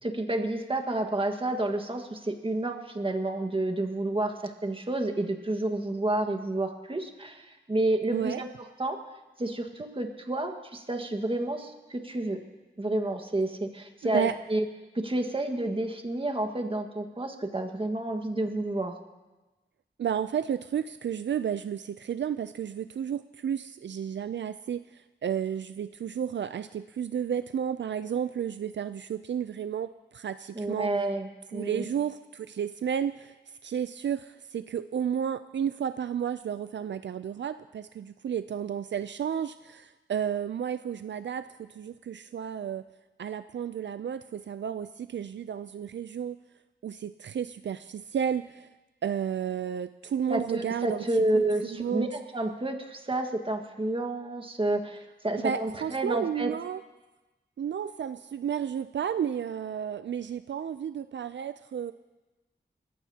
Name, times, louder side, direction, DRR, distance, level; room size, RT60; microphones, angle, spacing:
voice 1, 0.0-8.5 8.8-9.0 9.4-12.4 12.8-14.6 14.9-18.9 30.5-31.8 50.3-56.5, right 2 dB, 30° right, 4 dB, 1.6 m, -30 dB
voice 2, 8.1-8.4 14.0-14.3 20.0-30.9 31.5-33.3 33.6-42.8 43.2-46.4 46.8-48.7 49.0-52.1 55.4-56.8 57.6-61.9, right 8 dB, 75° right, 12 dB, 0.4 m, -32 dB
29.0 x 15.0 x 2.8 m, 1.1 s
wide cardioid pair, 100°, 19 cm